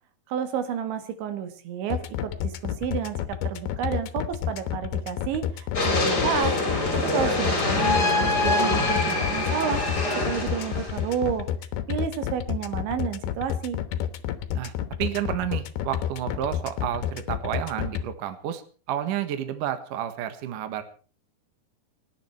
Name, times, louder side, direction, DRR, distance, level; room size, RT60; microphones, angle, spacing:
voice 1, 0.3-6.6 6.9-9.8 10.3-11.5 11.9-13.8, right 8 dB, 80° right, 9 dB, 4.1 m, -30 dB
sound 1, 1.9-18.0, left 11 dB, 70° left, 2.8 m, -29 dB
sound 2, 5.7-11.2, left 2 dB, 20° left, 4.4 m, -25 dB
voice 2, 15.0-18.6 18.9-20.8, right 11 dB, 60° right, 9 dB, 2.5 m, -30 dB
30.0 x 10.5 x 4.5 m, 0.40 s
omnidirectional pair, 5.3 m